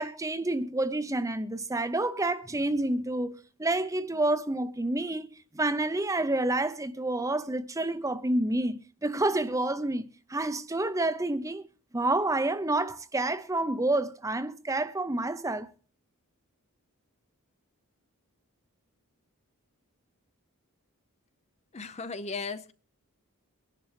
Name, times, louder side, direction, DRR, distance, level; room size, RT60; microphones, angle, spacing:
voice 1, 0.0-3.3 3.6-5.3 5.5-11.6 11.9-15.7, right 2 dB, 15° right, 0.7 m, -29 dB
voice 2, 21.7-22.7, left 4 dB, 30° left, 0.6 m, -36 dB
23.5 x 11.0 x 3.2 m
head